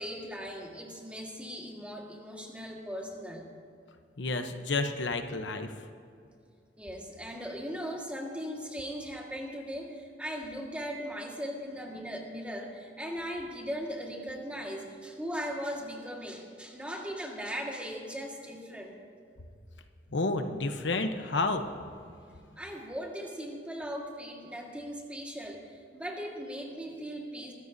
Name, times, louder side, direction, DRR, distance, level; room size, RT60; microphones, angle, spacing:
voice 1, 0.0-3.5 6.8-19.0 22.6-27.5, equal, 5° right, 0 dB, 1.7 m, -38 dB
voice 2, 4.2-5.7 20.1-21.6, left 3 dB, 90° left, 7 dB, 0.9 m, -30 dB
23.5 x 14.0 x 2.7 m, 2.3 s
head